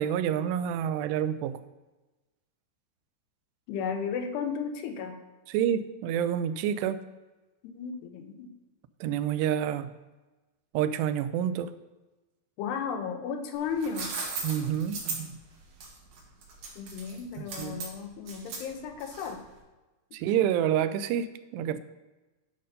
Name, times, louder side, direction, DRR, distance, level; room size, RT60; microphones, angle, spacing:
voice 1, 0.0-1.6 5.5-7.0 9.0-9.9 10.7-11.7 14.4-15.4 17.4-17.8 20.1-21.8, right 9 dB, 85° right, 12 dB, 2.7 m, -28 dB
voice 2, 3.7-5.2 7.6-8.5 12.6-14.2 16.8-19.4, left 6 dB, 85° left, 6 dB, 2.9 m, -34 dB
sound 1, 13.5-19.5, right 4 dB, 65° right, 3.7 m, -38 dB
11.0 x 5.5 x 5.1 m, 1.1 s
omnidirectional pair, 4.8 m